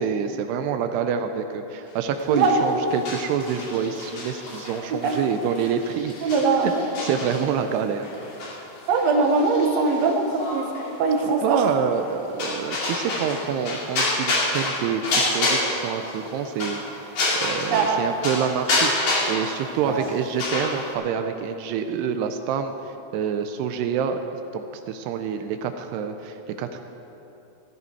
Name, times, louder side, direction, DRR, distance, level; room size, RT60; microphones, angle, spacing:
voice 1, 0.0-6.3 6.6-6.7 7.0-8.1 11.4-15.0 15.3-17.2 17.4-22.7 23.1-26.8, right 7 dB, 85° right, 7 dB, 2.6 m, -27 dB
sound 1, 2.2-18.0 18.2-20.9, left 2 dB, 50° left, 3.6 m, -28 dB
voice 2, 2.3-2.8 5.0-5.1 6.2-6.8 8.9-10.7 11.0-11.7 17.7-18.0 19.8-20.1, right 4 dB, 65° right, 1 dB, 1.7 m, -21 dB
15.5 x 13.5 x 4.6 m, 2.9 s
omnidirectional pair, 4.9 m